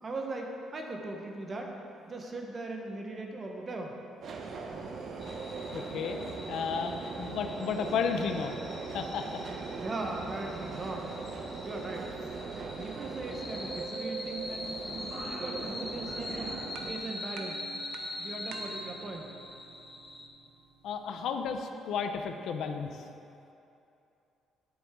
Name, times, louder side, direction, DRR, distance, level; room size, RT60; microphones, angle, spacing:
voice 1, 0.0-1.7 2.1-4.0 9.7-11.1 11.6-12.1 12.8-16.6 16.9-17.6 18.2-19.3, right 2 dB, 30° right, 1 dB, 1.0 m, -39 dB
Subway metro underground, 4.2-16.9, right 4 dB, 45° right, 0.8 m, -40 dB
sound 1, 5.2-20.3, left 2 dB, 20° left, 1.1 m, -43 dB
voice 2, 5.7-6.2 6.5-8.5 8.9-9.3 20.8-23.0, left 6 dB, 70° left, 6 dB, 0.6 m, -33 dB
sound 2, 16.3-21.6, right 6 dB, 90° right, 0.7 m, -49 dB
9.6 x 7.9 x 3.7 m, 2.8 s
cardioid pair, 135°, 0 cm